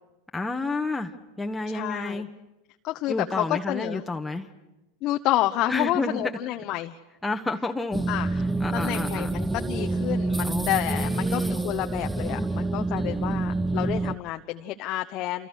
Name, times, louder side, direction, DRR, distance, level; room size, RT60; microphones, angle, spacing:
voice 1, 0.3-2.3 3.1-4.5 5.7-6.2 7.2-8.0 8.3-9.3 10.4-11.6, left 2 dB, 10° left, 3 dB, 1.6 m, -30 dB
voice 2, 1.7-2.3 2.8-4.0 5.0-7.0 8.1-8.4 8.7-15.5, left 15 dB, 45° left, 6 dB, 1.1 m, -29 dB
sound 1, 7.9-14.1, right 2 dB, 10° right, 1.2 m, -27 dB
29.0 x 28.5 x 6.5 m, 0.99 s
hypercardioid pair, 85°, 0 cm